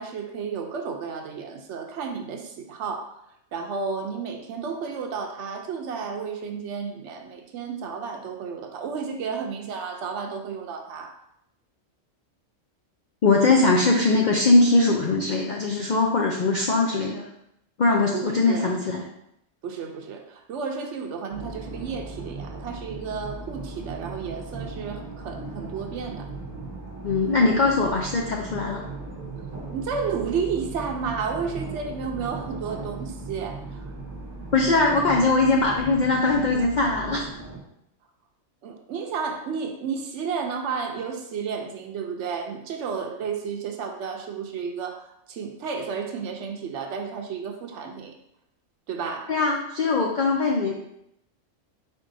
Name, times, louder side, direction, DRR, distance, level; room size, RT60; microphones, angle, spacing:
voice 1, 0.0-3.2 3.5-11.1 18.1-18.7 19.6-26.3 29.7-33.8 38.6-48.1 48.9-49.3, right 5 dB, 70° right, 4 dB, 0.9 m, -32 dB
voice 2, 13.2-17.3 17.8-19.0 27.0-28.8 34.5-37.2 49.3-50.7, left 3 dB, 70° left, 0 dB, 0.4 m, -21 dB
sound 1, 21.3-37.6, right 3 dB, 20° right, 0.6 m, -37 dB
4.5 x 4.4 x 2.6 m, 0.79 s
omnidirectional pair, 1.4 m